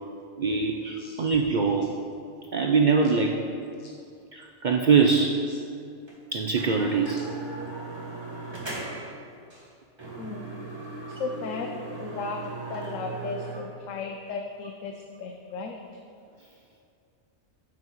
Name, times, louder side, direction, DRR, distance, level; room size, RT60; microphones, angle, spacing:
voice 1, 0.4-1.9 2.5-3.4 4.3-5.4 6.3-7.2, right 5 dB, 60° right, 1 dB, 0.5 m, -23 dB
sound 1, 6.1-6.2 6.6-9.1 9.5-9.7 10.0-13.6, right 3 dB, 20° right, 1.4 m, -38 dB
voice 2, 10.2-10.5 11.1-11.7 12.0-15.8, left 4 dB, 80° left, 3 dB, 1.0 m, -36 dB
12.0 x 6.2 x 3.0 m, 2.4 s
omnidirectional pair, 1.3 m